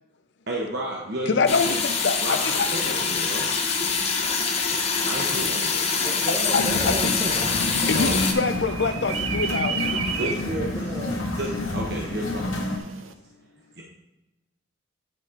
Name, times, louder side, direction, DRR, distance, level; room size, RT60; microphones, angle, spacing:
voice 1, 0.5-1.8 2.2-3.5 5.1-5.9 7.9-8.1 10.2-10.5 11.4-12.8 13.8-13.9, right 1 dB, 50° right, -2 dB, 1.0 m, -32 dB
voice 2, 1.3-2.7 6.5-7.1 7.9-10.4, left 4 dB, 55° left, 10 dB, 0.5 m, -25 dB
sound 1, 1.5-8.3, left 5 dB, 30° left, 0.9 m, -25 dB
voice 3, 6.0-7.5 10.5-11.2, right 1 dB, 15° right, -3 dB, 0.8 m, -33 dB
sound 2, 6.5-12.8, left 2 dB, 90° left, 1.5 m, -29 dB
sound 3, 7.5-13.1, right 6 dB, 80° right, 0.7 m, -34 dB
9.2 x 4.2 x 4.9 m, 0.97 s
head